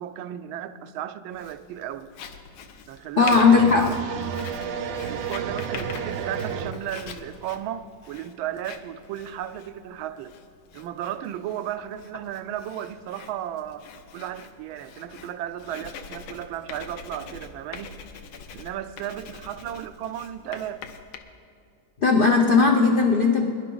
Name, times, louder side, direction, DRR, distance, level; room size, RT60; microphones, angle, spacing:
voice 1, 0.0-2.1 2.9-3.9 5.0-10.4 10.7-13.9 14.1-18.0 18.5-20.8, right 11 dB, 85° right, 11 dB, 1.4 m, -34 dB
Writing, 1.3-21.2, left 6 dB, 90° left, 1.6 m, -43 dB
voice 2, 3.2-3.9 22.0-23.5, left 4 dB, 70° left, 2 dB, 0.5 m, -17 dB
sound 1, 3.3-6.7, right 7 dB, 65° right, 1.1 m, -31 dB
22.0 x 11.0 x 3.9 m, 2.5 s
omnidirectional pair, 2.1 m